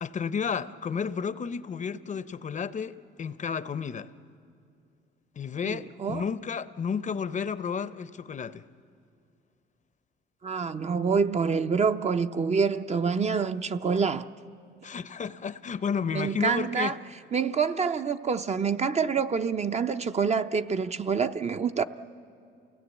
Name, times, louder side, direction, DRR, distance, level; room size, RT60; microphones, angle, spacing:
voice 1, 0.0-4.1 5.4-8.6 14.8-16.9, left 6 dB, 40° left, 0.6 m, -32 dB
voice 2, 5.6-6.2 10.4-14.3 16.1-16.9 17.3-21.8, right 5 dB, 35° right, 0.6 m, -27 dB
28.5 x 17.0 x 8.2 m
cardioid pair, 90°, 20 cm